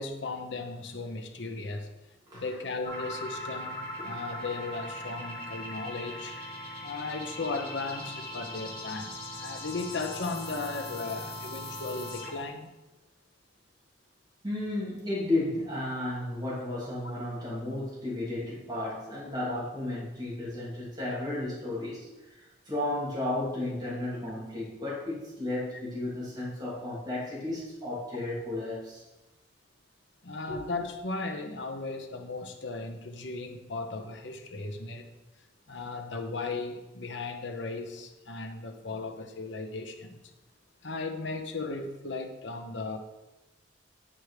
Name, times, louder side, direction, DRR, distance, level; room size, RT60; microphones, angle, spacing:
voice 1, 0.0-1.9 2.3-6.4 6.8-12.7 30.2-35.1 35.7-40.2 40.8-43.0, left 3 dB, 80° left, 5 dB, 1.0 m, -36 dB
sound 1, 2.8-12.5, left 1 dB, 50° left, 2.3 m, -40 dB
voice 2, 14.4-22.1 22.7-29.0 30.5-30.6, left 1 dB, 20° right, -7 dB, 3.0 m, -33 dB
10.0 x 4.7 x 5.0 m, 1.0 s
head